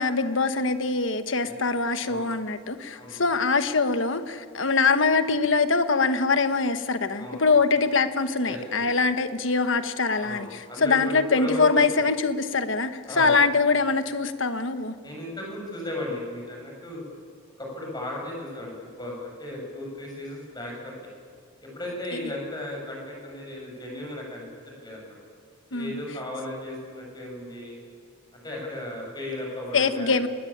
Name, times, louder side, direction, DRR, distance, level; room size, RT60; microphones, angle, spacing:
voice 1, 0.0-12.9 13.2-14.9 25.7-26.0 29.7-30.3, left 4 dB, 65° left, 9 dB, 1.4 m, -23 dB
voice 2, 2.9-3.2 7.2-7.5 8.4-8.9 10.2-11.6 12.0-12.1 13.1-13.4 15.0-17.0 17.6-21.1 21.6-24.4 24.8-25.1 25.7-27.8 28.3-30.3, left 1 dB, 20° left, -1 dB, 7.7 m, -36 dB
26.0 x 20.5 x 8.9 m, 2.3 s
head